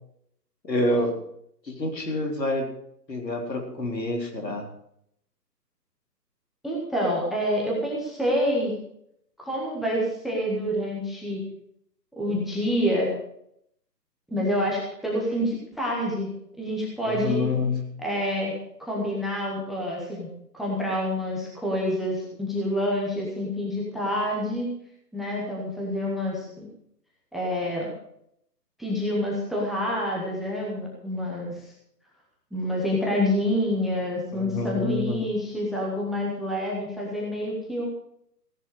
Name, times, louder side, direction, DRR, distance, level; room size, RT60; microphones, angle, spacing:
voice 1, 0.6-1.1 1.7-2.7 3.1-4.7 17.1-17.8 34.3-35.2, left 2 dB, 85° left, 2 dB, 3.9 m, -27 dB
voice 2, 6.6-8.8 9.4-11.4 12.2-13.1 14.3-16.3 16.6-17.4 18.0-18.5 18.8-20.3 20.5-24.7 25.1-26.7 27.3-27.9 28.8-31.7 32.5-37.9, equal, ahead, -4 dB, 0.8 m, -27 dB
16.0 x 10.5 x 4.8 m, 0.73 s
figure-of-eight pair, 145°, 49 cm